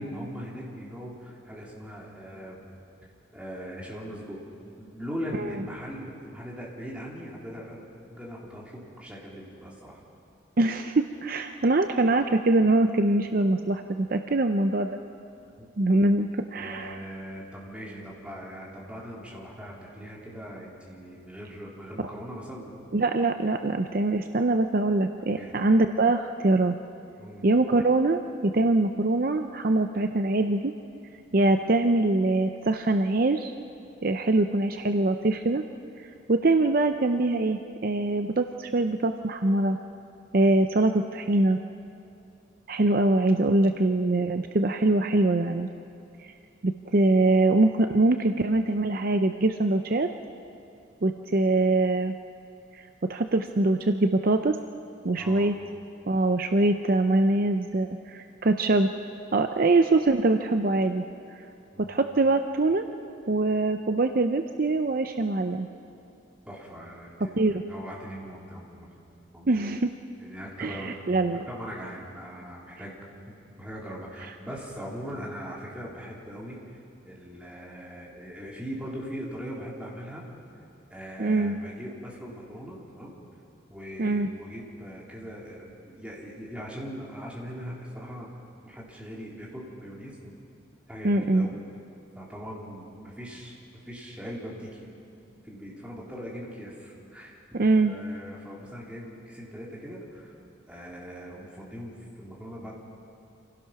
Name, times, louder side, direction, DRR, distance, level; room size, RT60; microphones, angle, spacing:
voice 1, 0.0-2.6 3.3-4.5 4.8-10.0 15.6-15.7 16.6-22.7 25.3-25.7 27.2-27.5 55.1-55.5 61.7-62.0 66.5-68.9 69.3-69.6 70.2-71.0 71.5-72.9 73.3-76.8 77.0-80.3 80.9-83.1 83.7-88.4 88.6-90.3 90.9-91.6 92.1-93.6 93.8-94.9 95.4-97.4 97.8-100.3 100.7-102.7, equal, 5° right, -4 dB, 3.3 m, -40 dB
voice 2, 10.6-15.0 15.8-17.0 22.9-26.7 27.4-30.7 31.3-33.5 34.0-35.6 36.0-39.8 40.3-41.6 42.7-45.7 46.2-46.3 46.6-50.1 51.0-52.2 52.7-54.6 55.0-55.5 56.0-58.9 59.3-61.0 61.4-61.5 61.8-62.8 63.3-65.7 67.4-67.6 69.5-69.9 70.6-71.4 81.2-81.5 84.0-84.3 91.0-91.5 97.5-97.9, right 2 dB, 50° right, 7 dB, 0.6 m, -23 dB
26.5 x 16.5 x 5.8 m, 2.7 s
head